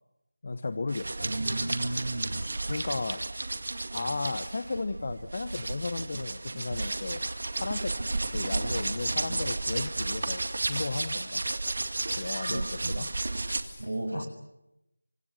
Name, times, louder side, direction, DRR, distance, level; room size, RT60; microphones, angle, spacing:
voice 1, 0.4-1.3 2.7-3.2 3.9-7.3 7.6-7.9 8.3-11.4 12.2-13.1 13.5-14.2, left 3 dB, 35° left, 11 dB, 1.0 m, -35 dB
sound 1, 0.9-13.6, right 2 dB, 50° right, 2.0 m, -33 dB
voice 2, 1.2-2.5 12.4-12.9 13.8-14.3, right 1 dB, 80° right, 5 dB, 6.8 m, -34 dB
29.0 x 25.0 x 6.5 m, 0.90 s
figure-of-eight pair, 175°, 0 cm